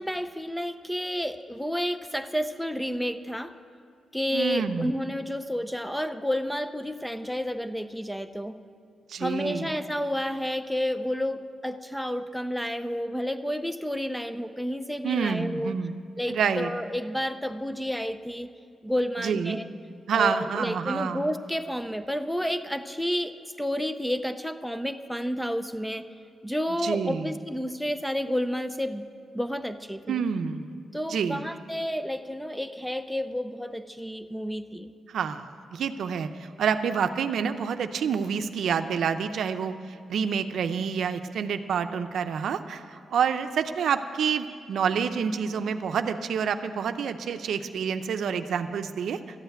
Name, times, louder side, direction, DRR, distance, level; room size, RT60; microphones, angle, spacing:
voice 1, 0.0-3.5 4.1-8.6 9.2-15.8 16.2-18.5 18.8-19.7 20.1-26.1 26.4-29.1 29.3-30.2 30.9-34.9, equal, ahead, 10 dB, 0.5 m, -30 dB
voice 2, 4.3-4.9 9.1-9.7 15.0-16.0 16.3-16.7 19.2-19.6 20.1-21.2 26.8-27.3 30.1-30.7 31.1-31.4 35.1-35.4 35.7-39.7 40.1-49.2, right 7 dB, 75° right, 9 dB, 0.6 m, -28 dB
13.0 x 8.1 x 9.2 m, 2.2 s
cardioid pair, 125°, 0 cm